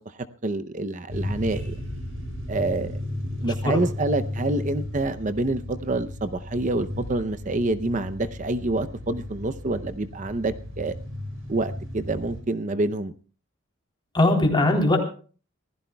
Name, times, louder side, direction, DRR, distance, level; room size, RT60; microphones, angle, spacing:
voice 1, 0.4-1.8 2.5-2.9 3.4-10.9 11.5-13.1, right 2 dB, 35° right, 11 dB, 0.6 m, -27 dB
sound 1, 1.1-12.4, left 1 dB, 90° right, 6.9 m, -34 dB
voice 2, 3.4-3.8 14.1-15.0, left 2 dB, 25° left, 0 dB, 3.4 m, -20 dB
25.5 x 15.5 x 2.3 m, 0.39 s
head